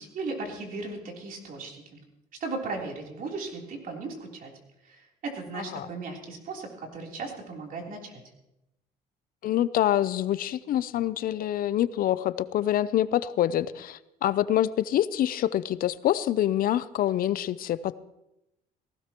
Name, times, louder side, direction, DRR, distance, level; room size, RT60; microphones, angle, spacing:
voice 1, 0.0-2.0 2.4-4.5 4.8-8.2, right 3 dB, 55° right, 0 dB, 3.5 m, -36 dB
voice 2, 5.5-5.9 9.4-18.0, left 12 dB, 60° left, 16 dB, 0.5 m, -26 dB
18.5 x 16.5 x 3.0 m, 0.89 s
cardioid pair, 110°, 17 cm